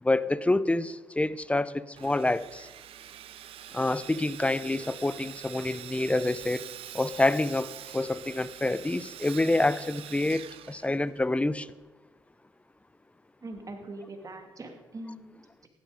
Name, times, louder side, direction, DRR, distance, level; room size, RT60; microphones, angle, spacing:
voice 1, 0.0-2.7 3.7-6.7 6.9-11.7, left 2 dB, 15° left, 0.6 m, -27 dB
Sawing, 1.9-11.4, right 11 dB, 75° right, 0.8 m, -45 dB
voice 2, 13.4-15.7, right 2 dB, 35° right, 2.5 m, -42 dB
15.5 x 11.5 x 5.1 m
supercardioid pair, 70°, 10 cm